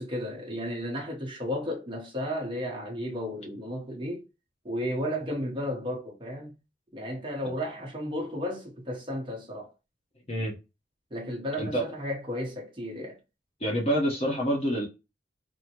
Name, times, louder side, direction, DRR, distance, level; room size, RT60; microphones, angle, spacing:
voice 1, 0.0-4.2 4.6-6.6 6.9-9.7 11.1-13.2, equal, 25° right, 0.9 m, -33 dB
voice 2, 13.6-14.9, equal, 30° left, 0.8 m, -27 dB
3.6 x 2.1 x 2.8 m
head